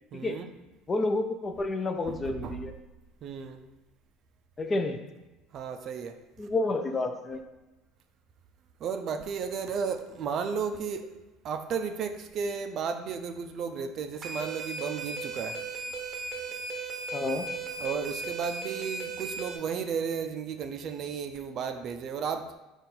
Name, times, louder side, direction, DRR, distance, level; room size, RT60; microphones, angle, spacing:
voice 1, 0.1-0.5 2.1-2.7 3.2-3.6 5.5-6.2 8.8-11.1 11.4-15.6 15.9-16.0 17.8-22.6, right 6 dB, 50° right, 8 dB, 0.3 m, -34 dB
voice 2, 0.9-2.7 4.6-5.0 6.4-7.4 17.1-17.5, left 2 dB, 25° left, 6 dB, 0.4 m, -29 dB
sound 1, 14.2-19.6, right 3 dB, 35° right, 0.7 m, -36 dB
3.9 x 2.4 x 4.2 m, 1.1 s
supercardioid pair, 105°, 0 cm